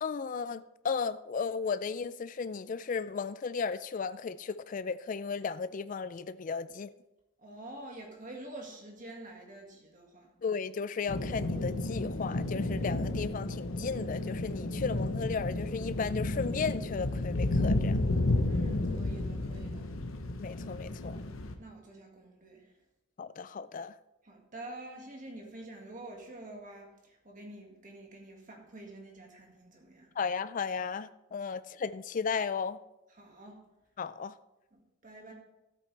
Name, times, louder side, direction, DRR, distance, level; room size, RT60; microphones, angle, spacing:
voice 1, 0.0-6.9 10.4-18.0 20.4-21.2 23.2-24.0 30.2-32.8 34.0-34.3, left 5 dB, 40° left, 0.3 m, -35 dB
voice 2, 7.4-10.3 18.2-19.9 21.6-22.7 24.2-30.1 33.1-33.6 34.7-35.3, right 1 dB, 40° right, 1.8 m, -47 dB
sound 1, 11.1-21.5, left 2 dB, 80° left, 0.9 m, -32 dB
13.0 x 8.3 x 3.3 m
head